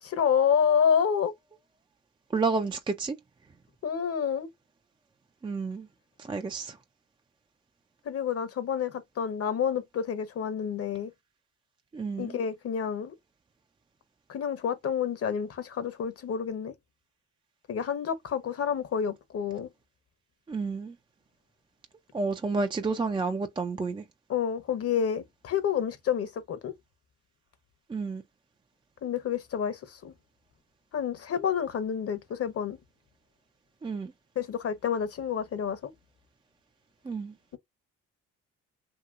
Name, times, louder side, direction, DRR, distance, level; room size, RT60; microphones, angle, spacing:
voice 1, 0.0-1.3 3.8-4.5 8.0-11.1 12.2-13.1 14.3-16.7 17.7-19.7 24.3-26.7 29.0-30.1 30.9-32.8 34.4-35.9, left 7 dB, 50° left, 0.9 m, -29 dB
voice 2, 2.3-3.2 5.4-5.9 6.2-6.8 11.9-12.4 20.5-21.0 22.1-24.0 27.9-28.2 33.8-34.1 37.0-37.3, right 4 dB, 15° right, 0.4 m, -30 dB
2.9 x 2.8 x 2.4 m
cardioid pair, 90°, 30 cm